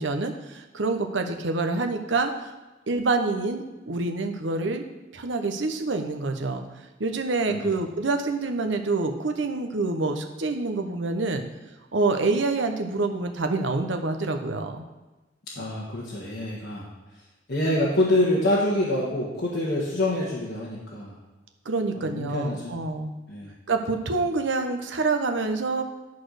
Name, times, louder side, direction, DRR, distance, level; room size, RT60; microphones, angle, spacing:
voice 1, 0.0-2.5 2.9-4.8 5.1-6.6 7.0-11.4 11.9-14.8 21.6-23.1 23.7-25.8, right 3 dB, 75° right, 5 dB, 0.9 m, -27 dB
voice 2, 15.5-16.9 17.5-21.1 21.9-22.7 23.3-23.5, left 1 dB, 60° left, -6 dB, 1.6 m, -26 dB
11.5 x 4.2 x 6.5 m, 1.1 s
head